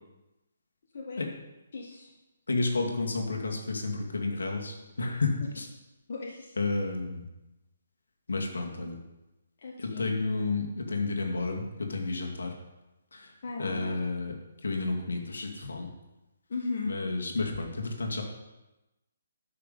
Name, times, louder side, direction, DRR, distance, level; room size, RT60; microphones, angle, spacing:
voice 1, 1.7-2.1 5.4-5.5 6.1-6.9 9.6-10.1 13.4-14.0 16.5-17.0, left 4 dB, 60° left, -1 dB, 1.4 m, -37 dB
voice 2, 2.5-5.3 6.6-7.2 8.3-8.9 10.0-11.6 11.9-12.5 13.6-14.3 14.6-15.9 16.9-18.2, left 3 dB, 80° left, 1 dB, 2.2 m, -31 dB
12.5 x 5.8 x 5.4 m, 1.0 s
hypercardioid pair, 145°, 0 cm